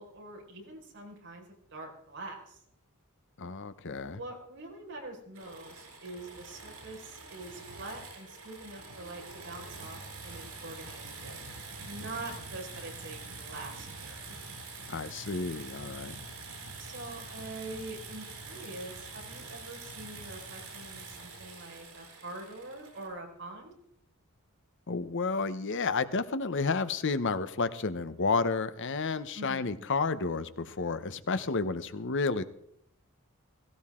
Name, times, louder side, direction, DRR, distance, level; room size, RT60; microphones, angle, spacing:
voice 1, 0.0-2.6 4.0-11.4 11.8-14.3 16.8-23.7 29.3-29.8, right 2 dB, 55° right, -1 dB, 4.8 m, -44 dB
voice 2, 3.4-4.2 14.9-16.2 24.9-32.4, left 4 dB, 55° left, 12 dB, 0.9 m, -31 dB
sound 1, 5.3-23.1, right 3 dB, 90° right, 7.3 m, -45 dB
17.5 x 17.0 x 3.7 m, 0.71 s
head